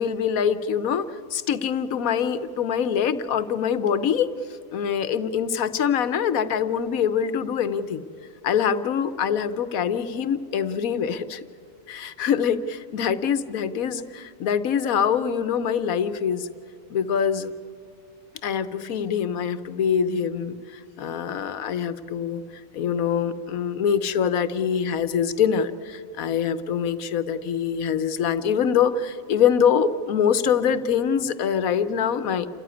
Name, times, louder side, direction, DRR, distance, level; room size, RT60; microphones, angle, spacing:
voice 1, 0.0-4.3 4.7-8.0 8.4-11.4 11.9-16.5 16.9-17.5 18.4-22.4 22.7-32.5, left 7 dB, 90° left, 13 dB, 1.3 m, -24 dB
28.5 x 14.5 x 9.7 m, 2.6 s
omnidirectional pair, 1.4 m